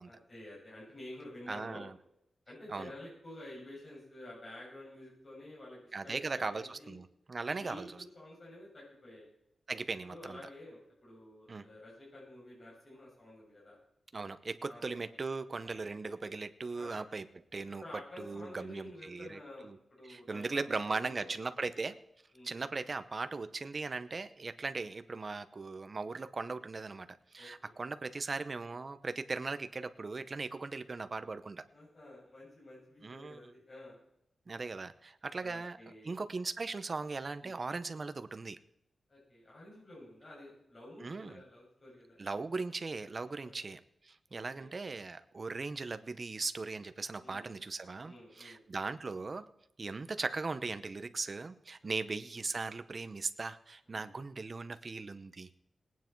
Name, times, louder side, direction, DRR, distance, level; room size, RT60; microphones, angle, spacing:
voice 1, 0.1-1.9 2.5-7.0 7.5-9.3 10.0-13.8 14.7-15.1 15.6-16.0 16.7-17.0 17.8-21.3 22.3-22.6 24.8-24.9 27.4-27.7 31.7-34.0 35.4-36.1 37.4-37.6 39.1-42.2 43.4-43.6 44.3-44.7 47.2-47.5 48.0-48.6 51.8-51.9 53.9-54.0, left 1 dB, 35° left, -5 dB, 7.2 m, -51 dB
voice 2, 1.5-1.9 2.7-2.9 5.9-8.0 9.7-10.4 11.5-11.7 14.1-17.3 17.5-17.8 18.2-19.8 20.1-22.0 22.4-27.1 27.3-31.6 33.0-33.5 34.5-35.8 36.0-38.6 41.0-41.4 42.2-49.5 49.8-55.6, right 3 dB, 35° right, 12 dB, 0.7 m, -38 dB
19.0 x 9.3 x 4.6 m, 0.79 s
wide cardioid pair, 140°, 0 cm